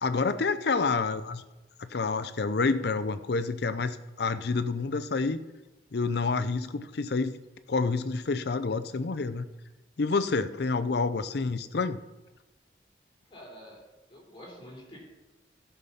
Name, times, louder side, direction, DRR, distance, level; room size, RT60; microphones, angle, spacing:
voice 1, 0.0-1.4 1.8-5.4 5.9-7.4 7.7-9.5 10.0-12.0, left 4 dB, 60° left, 12 dB, 0.5 m, -28 dB
voice 2, 13.3-13.8 14.1-15.0, left 1 dB, 25° left, -3 dB, 3.5 m, -46 dB
13.5 x 5.8 x 5.5 m, 1.1 s
head